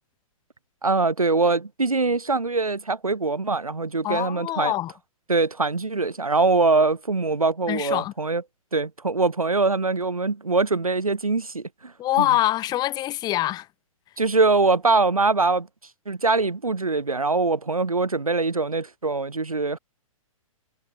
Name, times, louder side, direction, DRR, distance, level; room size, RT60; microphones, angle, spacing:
voice 1, 0.8-4.7 5.3-8.4 8.7-11.9 12.2-12.3 14.2-15.7 16.1-19.8, right 3 dB, 85° right, 2.1 m, -23 dB
voice 2, 4.0-4.9 7.7-8.1 12.0-13.7, left 14 dB, 25° left, 1.0 m, -24 dB
figure-of-eight pair, 115°, 18 cm